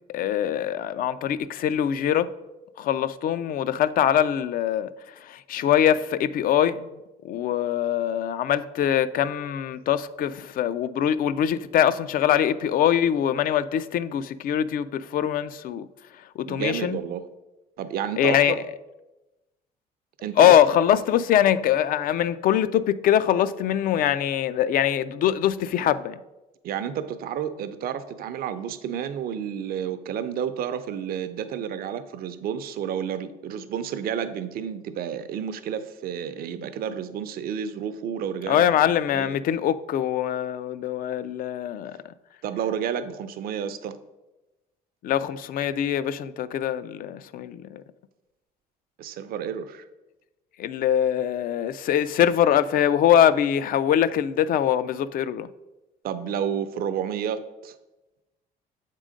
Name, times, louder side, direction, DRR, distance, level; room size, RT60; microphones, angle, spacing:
voice 1, 0.1-2.3 2.8-4.9 5.2-6.9 7.2-15.9 16.4-17.0 18.2-18.6 20.4-26.2 38.5-42.0 45.0-47.8 50.6-55.5, left 10 dB, 55° left, 0.4 m, -23 dB
voice 2, 16.5-17.3 17.8-18.6 20.2-20.6 26.6-38.8 39.1-39.4 42.4-44.0 49.0-49.8 56.0-57.7, right 8 dB, 60° right, 0.6 m, -30 dB
7.3 x 3.8 x 5.0 m
cardioid pair, 110°, 17 cm